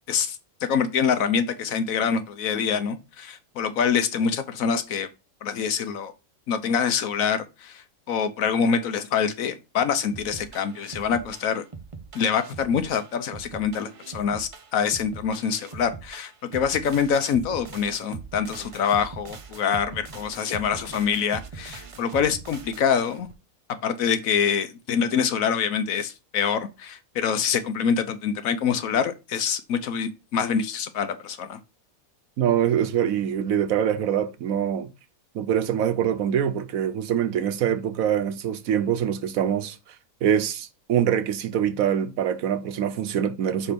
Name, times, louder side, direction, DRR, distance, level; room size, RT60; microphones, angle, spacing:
voice 1, 0.7-5.1 5.4-6.1 6.5-11.6 12.1-23.3 23.8-31.6, left 7 dB, 75° left, 1.2 m, -25 dB
sound 1, 10.1-23.3, right 4 dB, 45° right, 0.4 m, -41 dB
voice 2, 32.4-34.9 35.3-39.8 40.2-43.7, right 9 dB, 80° right, 1.1 m, -24 dB
5.1 x 4.4 x 5.2 m
omnidirectional pair, 1.5 m